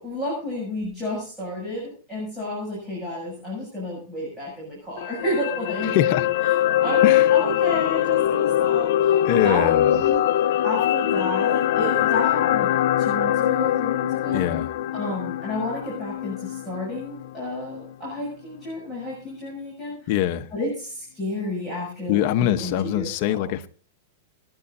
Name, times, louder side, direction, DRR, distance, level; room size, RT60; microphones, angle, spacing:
voice 1, 0.0-6.0 6.8-7.0 7.3-10.2 10.6-14.5 14.9-20.1 20.5-23.4, left 1 dB, 10° right, 7.3 m, -31 dB
sound 1, 5.0-17.3 17.6-17.8, left 12 dB, 65° left, 0.6 m, -22 dB
voice 2, 5.8-6.3 7.0-7.3 9.2-10.0 14.3-14.7 20.1-20.5 22.1-23.7, left 12 dB, 45° left, 1.0 m, -23 dB
29.0 x 9.8 x 2.7 m
supercardioid pair, 160°, 0 cm